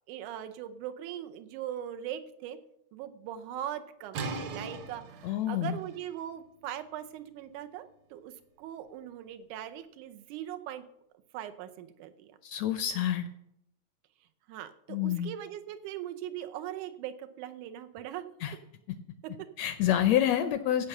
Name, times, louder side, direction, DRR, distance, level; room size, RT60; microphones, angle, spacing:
voice 1, 0.1-2.6 2.9-10.9 11.3-12.4 14.5-18.2 19.2-19.5, right 11 dB, 85° right, 9 dB, 2.2 m, -40 dB
sound 1, 4.1-9.8, right 3 dB, 65° right, 2.2 m, -43 dB
voice 2, 5.2-5.8 12.4-13.2 14.9-15.3 18.4-18.5 19.6-20.9, left 11 dB, 75° left, 10 dB, 1.6 m, -27 dB
15.5 x 5.4 x 6.6 m, 0.80 s
omnidirectional pair, 3.4 m